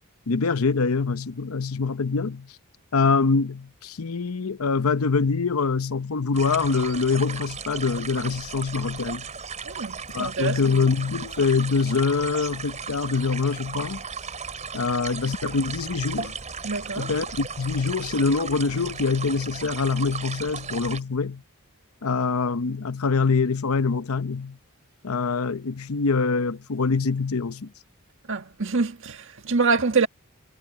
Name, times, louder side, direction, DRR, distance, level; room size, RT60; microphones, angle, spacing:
voice 1, 0.3-2.5 2.9-9.3 10.1-14.0 14.7-16.4 17.0-21.4 22.0-24.6 25.0-27.7, left 4 dB, 85° left, 0.8 m, -24 dB
sound 1, 6.3-21.0, right 5 dB, 35° right, 4.3 m, -36 dB
voice 2, 9.7-10.6 16.6-17.1 28.3-30.1, right 4 dB, 65° right, 1.7 m, -25 dB
head